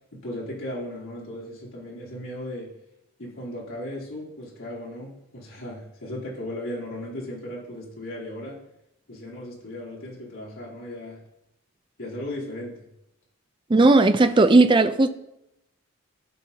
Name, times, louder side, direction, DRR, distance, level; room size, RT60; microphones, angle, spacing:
voice 1, 0.1-2.7 3.2-8.6 9.1-11.2 12.0-12.9, left 1 dB, 70° left, 3.3 m, -36 dB
voice 2, 13.7-15.1, right 2 dB, 20° right, 0.4 m, -16 dB
15.0 x 5.4 x 2.9 m
head